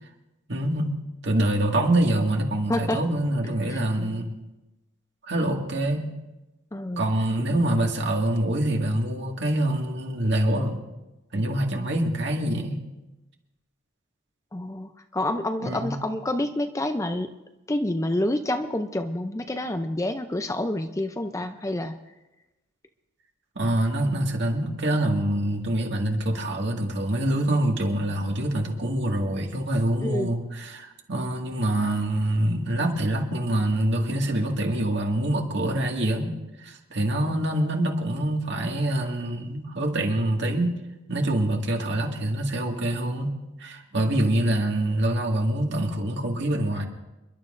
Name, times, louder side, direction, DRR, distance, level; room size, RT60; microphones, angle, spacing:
voice 1, 0.5-1.0 1.2-4.3 5.3-6.2 7.0-10.8 11.3-12.8 15.6-16.0 23.6-40.8 41.1-43.3 43.6-46.8, right 1 dB, 55° right, 1 dB, 2.0 m, -25 dB
voice 2, 2.7-3.0 3.7-3.8 6.7-7.0 14.5-17.3 17.7-22.0 30.0-30.3, left 1 dB, 15° left, 7 dB, 0.4 m, -28 dB
29.0 x 11.5 x 2.6 m, 1.0 s
head